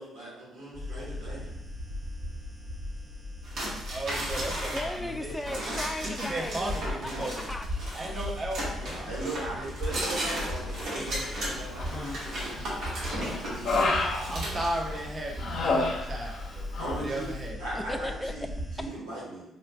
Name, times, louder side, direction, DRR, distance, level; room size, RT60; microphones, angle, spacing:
voice 1, 0.0-1.5 6.8-7.3 9.0-12.7 13.3-13.7 16.8-17.3 17.6-18.5 18.8-19.4, right 1 dB, 90° right, -6 dB, 1.3 m, -38 dB
sound 1, 0.7-18.9, left 1 dB, 20° right, 1.2 m, -38 dB
sound 2, 3.4-15.1, right 1 dB, 70° right, 1.1 m, -36 dB
voice 2, 3.9-5.3 6.0-7.3 7.9-9.7 14.3-17.6, right 1 dB, 40° right, -1 dB, 0.9 m, -36 dB
voice 3, 4.7-7.9 17.7-18.3, left 1 dB, 15° left, 8 dB, 0.3 m, -37 dB
Human voice, 11.8-12.4 12.8-15.0 15.4-16.5 16.7-17.0, left 3 dB, 65° left, 0.6 m, -29 dB
4.4 x 2.4 x 2.3 m, 0.83 s
supercardioid pair, 55°, 0 cm